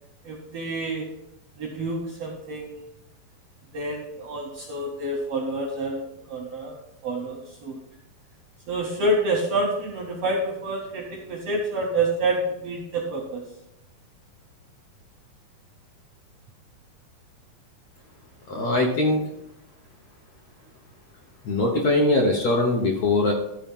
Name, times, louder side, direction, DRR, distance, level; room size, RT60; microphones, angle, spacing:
voice 1, 0.2-1.1 1.6-2.9 3.7-7.8 8.7-13.5, right 2 dB, 70° right, 0 dB, 1.5 m, -28 dB
voice 2, 18.5-19.2 21.4-23.3, left 2 dB, 65° left, -1 dB, 1.9 m, -21 dB
13.5 x 4.5 x 5.4 m, 0.87 s
omnidirectional pair, 4.2 m